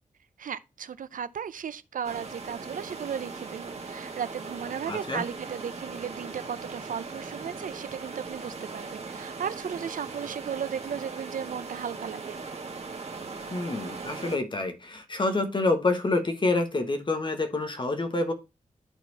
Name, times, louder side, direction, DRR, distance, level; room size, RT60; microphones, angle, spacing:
voice 1, 0.4-12.4, right 8 dB, 85° right, 0.6 m, -35 dB
sound 1, 2.0-14.4, right 4 dB, 50° right, 1.9 m, -39 dB
voice 2, 4.9-5.2 13.5-18.3, left 2 dB, 35° left, 1.4 m, -27 dB
11.5 x 4.4 x 4.1 m
wide cardioid pair, 125°, 13 cm